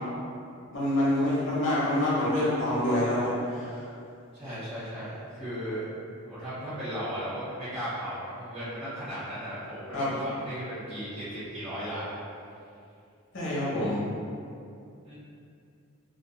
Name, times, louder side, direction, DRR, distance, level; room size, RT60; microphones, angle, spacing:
voice 1, 0.7-3.8 9.9-10.1 13.3-14.0, left 1 dB, 55° left, -9 dB, 0.9 m, -26 dB
voice 2, 4.3-5.8 6.2-12.2 15.0-15.1, equal, 25° right, -16 dB, 0.9 m, -36 dB
2.5 x 2.2 x 2.4 m, 2.5 s
head